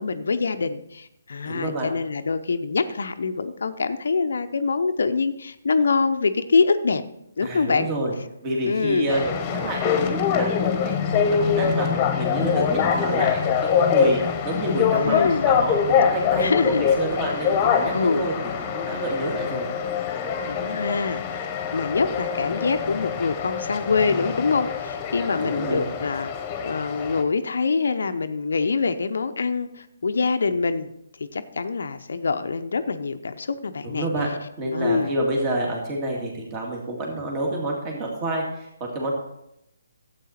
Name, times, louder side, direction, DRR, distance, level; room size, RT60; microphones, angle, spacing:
voice 1, 0.0-7.0 7.4-7.9 8.6-9.2 15.0-15.5 16.4-16.9 17.9-18.3 20.4-21.4 21.7-26.3 26.6-30.9 31.3-34.1 34.7-35.1, left 4 dB, 65° left, 9 dB, 0.6 m, -24 dB
voice 2, 1.5-1.9 7.4-8.1 8.4-10.0 10.3-10.5 10.8-14.2 14.4-19.7 25.4-25.9 33.8-34.3 34.6-39.1, right 1 dB, 25° right, -1 dB, 2.1 m, -28 dB
sound 1, 9.1-27.2, left 7 dB, 20° left, 1.2 m, -24 dB
12.0 x 8.3 x 4.3 m, 0.81 s
figure-of-eight pair, 145°, 0 cm